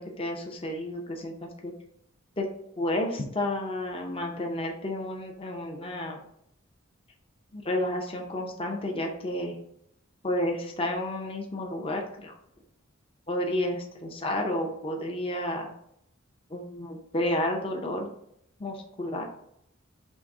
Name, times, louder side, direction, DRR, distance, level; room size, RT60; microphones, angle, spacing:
voice 1, 0.0-1.7 2.4-2.5 2.8-6.2 7.5-9.6 10.2-12.3 13.3-15.7 16.5-18.1 18.6-19.2, left 1 dB, 25° left, 1 dB, 0.5 m, -31 dB
6.0 x 2.0 x 3.6 m, 0.75 s
head